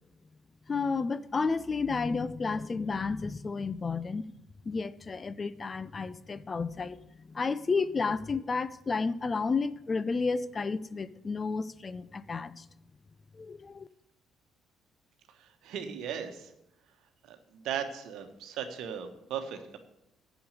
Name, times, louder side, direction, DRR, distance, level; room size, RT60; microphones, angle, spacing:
voice 1, 0.7-4.2 4.7-7.0 7.3-12.6 13.3-13.9, left 4 dB, 30° left, 0.5 m, -31 dB
voice 2, 15.4-16.5 17.3-19.8, right 8 dB, 60° right, 1.2 m, -37 dB
8.6 x 7.1 x 8.0 m
figure-of-eight pair, 45°, 0 cm